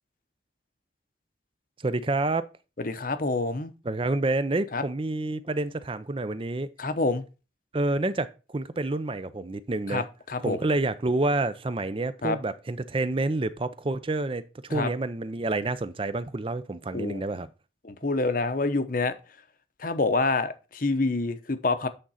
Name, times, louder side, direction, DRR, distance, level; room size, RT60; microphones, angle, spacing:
voice 1, 1.8-2.5 3.9-6.7 7.7-10.0 10.4-17.5, right 2 dB, 30° right, 0.5 m, -28 dB
voice 2, 2.8-3.7 4.7-4.8 6.8-7.2 9.9-10.6 12.2-12.4 14.7-14.9 16.9-17.2 17.8-19.1 19.8-21.9, left 3 dB, 45° left, 0.8 m, -27 dB
8.7 x 3.8 x 5.6 m
head